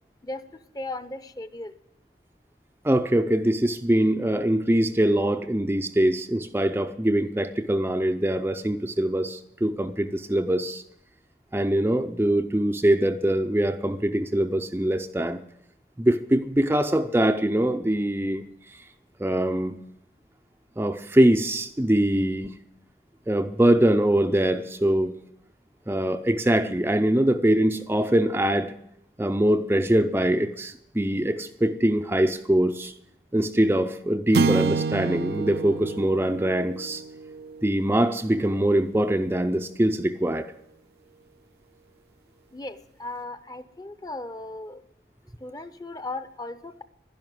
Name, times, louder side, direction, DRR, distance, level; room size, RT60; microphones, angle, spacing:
voice 1, 0.2-1.7 42.5-44.8 45.4-46.8, left 2 dB, 20° left, 12 dB, 0.7 m, -37 dB
voice 2, 2.8-10.8 11.5-15.4 16.0-18.4 18.7-18.8 19.2-19.7 20.8-22.5 23.3-25.1 25.9-28.7 29.2-32.9 33.3-37.0 37.6-40.5, right 1 dB, 15° right, 6 dB, 0.5 m, -23 dB
sound 1, 34.3-38.8, right 4 dB, 65° right, 0.4 m, -29 dB
11.5 x 11.0 x 9.2 m, 0.82 s
head